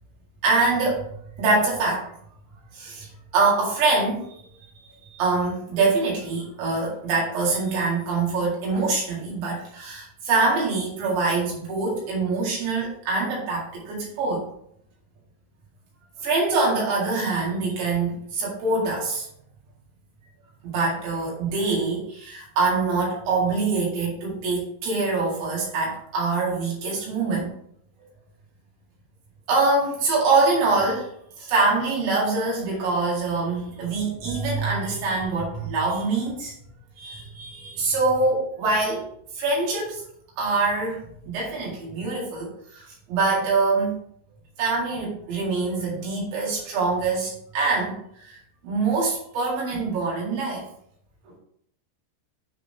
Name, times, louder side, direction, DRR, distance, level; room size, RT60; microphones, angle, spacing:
voice 1, 0.4-1.1 1.4-2.1 2.7-3.1 3.3-4.3 5.1-14.5 16.2-19.3 20.6-27.5 29.5-31.1 31.4-36.5 37.0-39.0 39.4-40.0 40.4-44.0 44.6-48.4 48.6-50.6, right 3 dB, 65° right, -4 dB, 4.1 m, -24 dB
10.0 x 3.9 x 3.4 m, 0.69 s
omnidirectional pair, 6.0 m